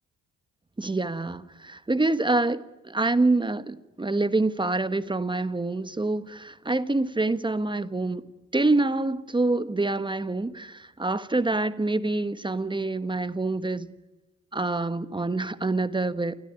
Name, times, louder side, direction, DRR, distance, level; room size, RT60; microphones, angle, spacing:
voice 1, 0.8-8.2 8.5-13.9 14.5-16.3, right 2 dB, 15° right, 1.3 m, -26 dB
28.5 x 16.5 x 9.6 m
cardioid pair, 90°, 30 cm